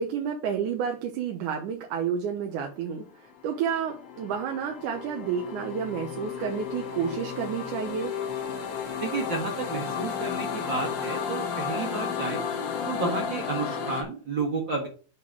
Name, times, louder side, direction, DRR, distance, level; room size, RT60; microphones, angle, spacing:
voice 1, 0.0-8.1, right 7 dB, 80° right, 2 dB, 2.4 m, -30 dB
sound 1, 3.3-14.0, left 7 dB, 85° left, 3.2 m, -33 dB
voice 2, 9.0-12.4 12.9-14.9, right 4 dB, 45° right, 0 dB, 1.9 m, -31 dB
7.7 x 4.1 x 6.2 m, 0.40 s
omnidirectional pair, 3.5 m